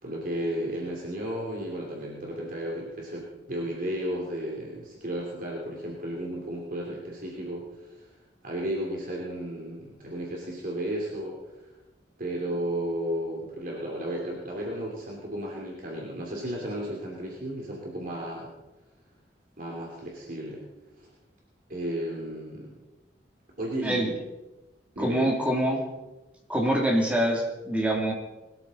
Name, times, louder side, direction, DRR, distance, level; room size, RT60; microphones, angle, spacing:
voice 1, 0.0-8.1 8.4-11.6 12.2-18.5 19.6-20.6 21.0-21.1 21.7-22.7 23.6-24.2 24.9-25.4, right 1 dB, 55° right, -2 dB, 2.8 m, -33 dB
voice 2, 25.0-25.8 26.5-28.1, right 1 dB, 10° right, -1 dB, 3.0 m, -25 dB
21.5 x 13.5 x 4.2 m, 1.1 s
head